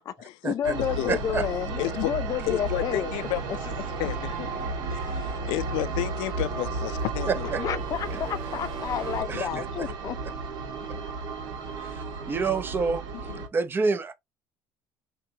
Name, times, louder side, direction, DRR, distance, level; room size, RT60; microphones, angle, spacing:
voice 1, 0.0-3.1 3.5-3.6 7.4-10.2, left 9 dB, 45° left, 0.6 m, -31 dB
sound 1, 0.6-13.5, right 3 dB, 70° right, 1.6 m, -33 dB
voice 2, 1.1-1.4 7.5-7.6 9.3-9.5 11.8-11.9 12.3-13.0 13.5-14.1, right 4 dB, 25° right, 0.7 m, -27 dB
sound 2, 1.7-9.2, right 5 dB, 85° right, 2.2 m, -40 dB
voice 3, 1.8-2.1 2.5-3.7 4.0-7.5 9.3-9.6 10.8-10.9 11.8-12.0 13.3-13.4, left 17 dB, 90° left, 0.4 m, -32 dB
4.6 x 3.0 x 2.8 m
cardioid pair, 135°, 8 cm